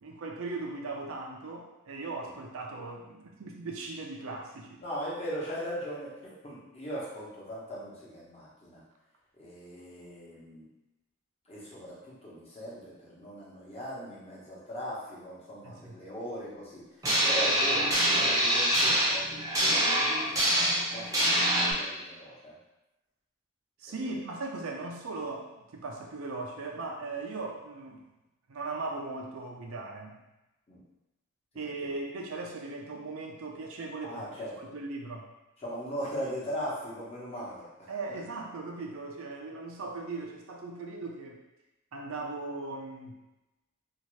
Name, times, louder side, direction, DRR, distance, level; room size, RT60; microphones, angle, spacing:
voice 1, 0.0-4.8 15.6-15.9 23.8-28.1 28.5-30.2 31.6-34.2 34.6-35.2 37.9-41.4 41.9-43.2, right 3 dB, 70° right, 0 dB, 0.5 m, -38 dB
voice 2, 4.8-6.1 6.4-8.8 9.4-10.6 11.5-22.5 24.1-24.2 30.7-30.8 31.5-31.7 34.0-34.5 35.6-37.9, equal, 30° left, -7 dB, 1.0 m, -39 dB
sound 1, 17.0-21.7, right 1 dB, 15° right, 0.7 m, -25 dB
2.8 x 2.4 x 3.1 m, 0.99 s
head